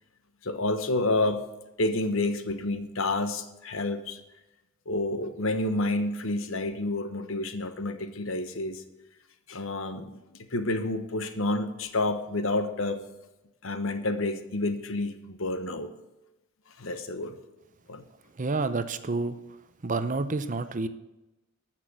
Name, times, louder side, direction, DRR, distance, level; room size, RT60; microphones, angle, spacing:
voice 1, 0.4-1.4 1.8-4.2 4.9-8.8 9.5-13.0 13.6-15.9 16.8-17.4 17.9-18.0, left 2 dB, 65° left, 9 dB, 1.2 m, -29 dB
voice 2, 18.4-19.4 19.8-20.9, right 3 dB, 35° right, 12 dB, 0.7 m, -29 dB
13.5 x 6.1 x 8.1 m, 0.98 s
head